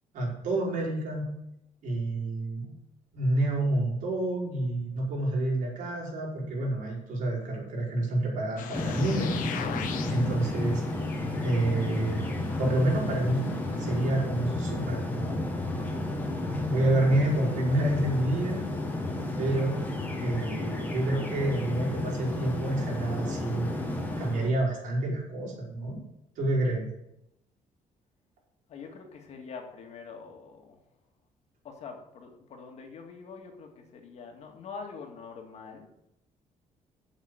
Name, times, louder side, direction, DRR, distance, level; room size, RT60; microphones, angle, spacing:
voice 1, 0.1-1.2 1.8-2.7 3.1-9.3 9.6-9.8 10.1-10.8 11.4-12.2 12.6-13.5 13.8-15.4 16.6-18.7 19.4-19.8 20.2-23.7 24.2-26.0 26.3-26.8, right 1 dB, 75° right, -4 dB, 5.1 m, -28 dB
sound 1, 8.6-14.1, left 7 dB, 85° left, 1.3 m, -41 dB
sound 2, 8.7-24.5, left 2 dB, 15° left, 1.7 m, -32 dB
voice 2, 28.7-30.8 31.6-35.9, left 5 dB, 55° left, 3 dB, 2.1 m, -44 dB
7.9 x 7.3 x 7.9 m, 0.84 s
cardioid pair, 160°, 14 cm